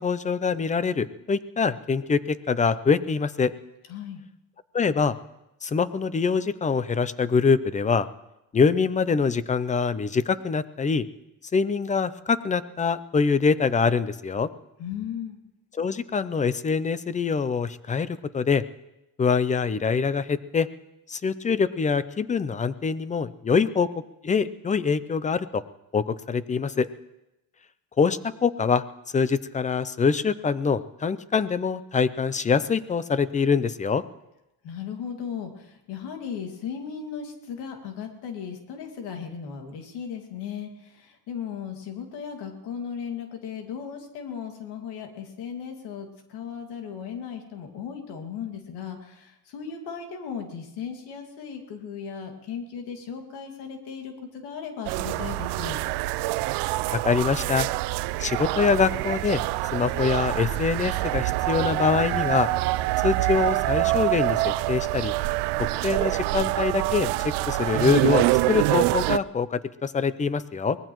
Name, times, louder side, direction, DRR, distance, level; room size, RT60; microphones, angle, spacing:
voice 1, 0.0-3.5 4.7-5.2 5.6-8.1 8.5-11.1 11.5-14.5 15.7-18.6 19.2-20.7 21.1-23.9 24.2-25.6 25.9-26.9 28.0-28.8 29.1-34.0 56.9-57.7 58.2-59.4 59.7-62.5 63.0-65.1 65.6-70.8, left 5 dB, 20° left, 15 dB, 0.5 m, -24 dB
voice 2, 3.9-4.2 14.8-15.4 34.6-55.8, left 7 dB, 85° left, 4 dB, 2.3 m, -36 dB
sound 1, 54.9-69.2, right 19 dB, 85° right, 0.5 m, -25 dB
23.5 x 19.0 x 3.1 m, 0.90 s
cardioid pair, 125°, 39 cm